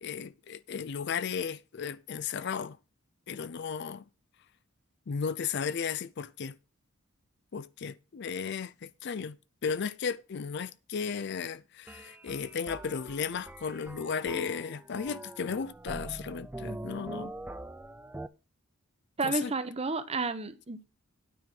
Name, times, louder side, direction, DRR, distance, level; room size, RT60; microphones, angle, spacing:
voice 1, 0.0-2.8 3.3-4.0 5.1-6.5 7.5-17.3 19.2-19.5, left 6 dB, 55° left, 0.4 m, -35 dB
sound 1, 11.9-18.3, right 1 dB, 10° right, 0.4 m, -43 dB
voice 2, 19.2-20.9, right 3 dB, 30° right, 0.8 m, -31 dB
9.3 x 5.4 x 6.0 m
head